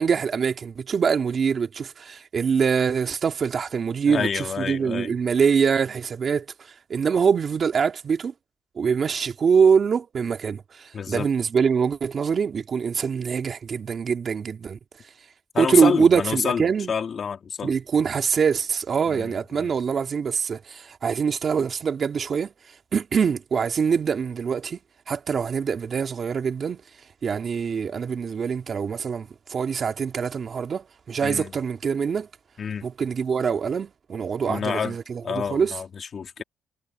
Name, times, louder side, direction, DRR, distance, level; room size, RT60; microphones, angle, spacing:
voice 1, 0.0-8.3 8.8-14.8 15.6-16.9 17.6-22.5 22.9-24.8 25.1-26.8 27.2-32.3 32.8-35.7, right 6 dB, 50° right, 2.5 m, -24 dB
voice 2, 4.1-5.1 10.9-11.3 15.5-16.6 16.9-17.8 19.1-19.7 31.2-31.5 32.6-32.9 34.4-35.0 35.2-36.4, left 6 dB, 50° left, 2.6 m, -28 dB
cardioid pair, 90°, 0 cm